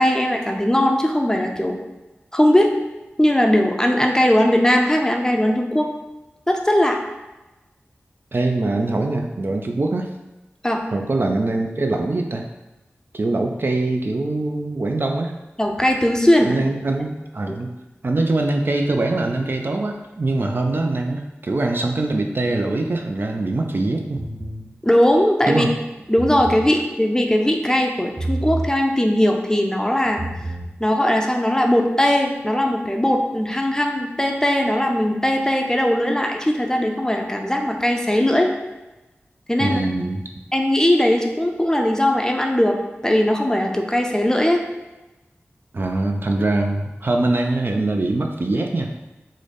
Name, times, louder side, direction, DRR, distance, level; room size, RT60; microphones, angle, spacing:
voice 1, 0.0-1.8 2.3-2.7 3.2-5.9 6.5-7.0 10.6-10.8 15.6-16.6 24.8-25.7 26.1-30.2 30.8-38.5 39.5-39.8 40.5-44.6, left 1 dB, 15° left, 2 dB, 0.5 m, -19 dB
voice 2, 8.3-10.1 10.9-12.5 13.1-15.3 16.5-17.7 18.0-24.2 25.5-25.7 39.6-40.2 45.7-48.9, right 2 dB, 50° right, 3 dB, 0.4 m, -23 dB
sound 1, 24.2-24.7 26.0-26.7 28.2-28.7 30.0-30.7, right 2 dB, 35° right, 0.7 m, -28 dB
3.8 x 2.1 x 3.3 m, 1.1 s
cardioid pair, 45°, 5 cm